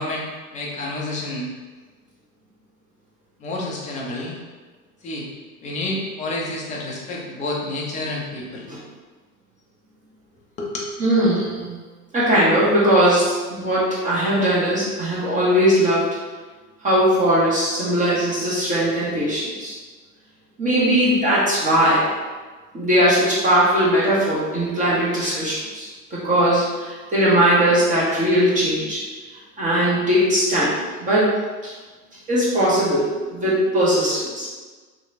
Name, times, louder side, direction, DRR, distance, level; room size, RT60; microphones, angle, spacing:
voice 1, 0.0-1.5 3.4-4.4 5.0-5.3 5.6-8.7 10.6-10.9, left 2 dB, 20° left, -3 dB, 0.4 m, -29 dB
voice 2, 11.0-11.7 12.1-16.1 16.8-19.7 20.6-22.0 22.7-29.0 29.6-31.3 31.6-31.7 32.3-34.5, equal, 20° right, -8 dB, 0.8 m, -19 dB
2.8 x 2.1 x 2.5 m, 1.3 s
hypercardioid pair, 90°, 44 cm